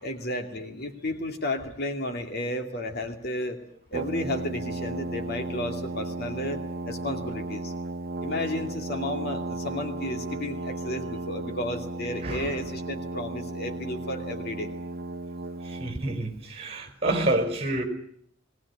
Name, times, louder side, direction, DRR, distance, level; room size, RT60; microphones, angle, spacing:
voice 1, 0.0-3.6 3.9-7.7 8.2-14.7, left 1 dB, 55° left, 2.6 m, -33 dB
Brass instrument, 3.9-16.2, right 2 dB, 50° right, 1.1 m, -35 dB
voice 2, 12.2-12.6 15.6-17.8, right 2 dB, 30° right, 4.8 m, -28 dB
20.0 x 18.5 x 9.8 m
head